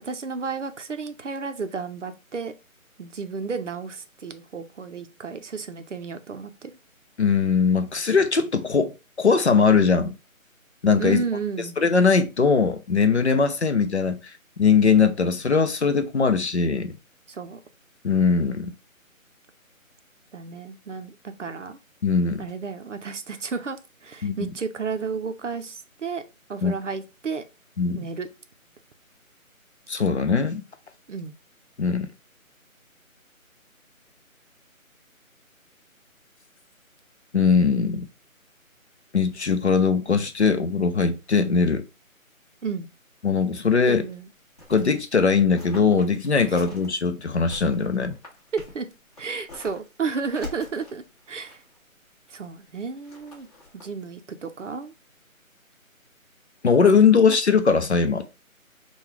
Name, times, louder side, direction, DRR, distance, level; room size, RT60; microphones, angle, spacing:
voice 1, 0.0-2.5 3.0-6.7 11.0-11.8 17.3-17.6 20.3-21.8 22.4-26.2 26.5-27.4 27.9-28.3 31.1-31.3 42.6-42.9 43.9-44.3 46.5-46.6 48.5-48.9 49.2-51.6 52.3-53.5 53.7-54.9, right 5 dB, 60° right, 0.6 m, -32 dB
voice 2, 7.2-8.9 9.2-10.1 10.8-11.2 11.8-14.2 14.6-16.9 18.0-18.7 22.0-22.4 24.2-24.3 26.6-26.7 27.8-28.0 29.9-30.6 31.8-32.1 37.3-38.1 39.1-41.8 43.2-44.0 44.7-48.2 56.6-58.3, left 5 dB, 55° left, 0.6 m, -20 dB
sound 1, 44.0-45.0 45.6-46.9 47.3-50.0 50.2-51.8 52.8-53.8, left 3 dB, 25° left, 1.5 m, -44 dB
3.9 x 2.3 x 4.4 m
figure-of-eight pair, 170°, 42 cm